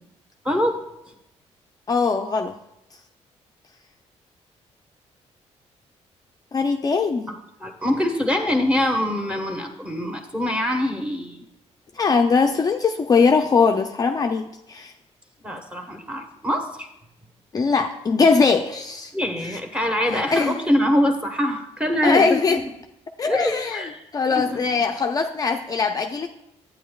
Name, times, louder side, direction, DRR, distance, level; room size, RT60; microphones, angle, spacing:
voice 1, 0.4-0.8 7.6-11.5 15.4-16.9 19.1-22.6 23.2-24.0 24.3-24.6, left 1 dB, 10° right, 2 dB, 1.2 m, -24 dB
voice 2, 1.9-2.5 6.5-7.3 12.0-14.9 17.5-19.1 20.1-20.6 22.0-22.6 23.2-23.8 24.1-26.3, left 4 dB, 30° left, 4 dB, 0.5 m, -21 dB
11.5 x 9.1 x 2.3 m, 0.83 s
cardioid pair, 105°, 12 cm